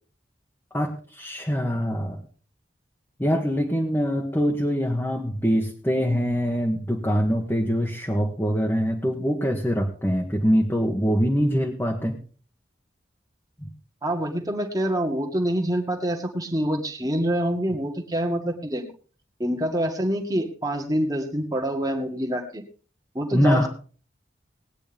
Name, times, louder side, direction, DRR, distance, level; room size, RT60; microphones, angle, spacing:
voice 1, 0.7-2.2 3.2-12.2 13.6-13.7 23.3-23.7, equal, 10° left, -1 dB, 1.5 m, -24 dB
voice 2, 14.0-18.8 19.4-22.6 23.1-23.7, right 1 dB, 20° right, 3 dB, 2.1 m, -26 dB
19.5 x 9.9 x 3.6 m, 0.40 s
head